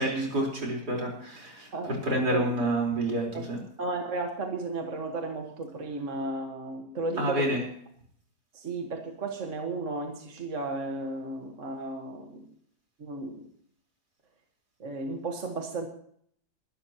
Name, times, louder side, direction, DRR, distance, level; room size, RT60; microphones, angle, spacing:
voice 1, 0.0-3.6 7.2-7.6, right 1 dB, 80° right, -1 dB, 5.0 m, -28 dB
voice 2, 1.7-2.5 3.3-3.4 3.8-7.5 8.5-12.5 13.0-13.4 14.8-15.9, right 3 dB, 50° right, 3 dB, 1.9 m, -34 dB
22.5 x 12.5 x 3.0 m, 0.64 s
omnidirectional pair, 1.7 m